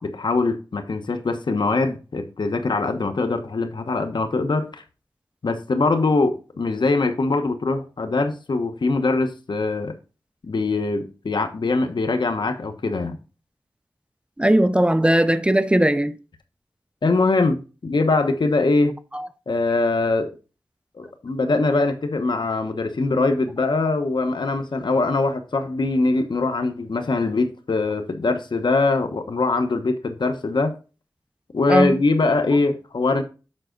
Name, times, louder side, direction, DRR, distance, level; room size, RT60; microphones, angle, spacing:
voice 1, 0.0-4.8 5.4-9.9 10.4-13.2 17.0-18.9 19.5-20.3 21.0-30.7 31.5-33.2, left 3 dB, 70° left, 1.1 m, -22 dB
voice 2, 14.4-16.2 19.1-19.3 31.7-32.0, right 1 dB, 15° right, 0.5 m, -18 dB
7.6 x 5.7 x 3.8 m
wide cardioid pair, 70°, 8 cm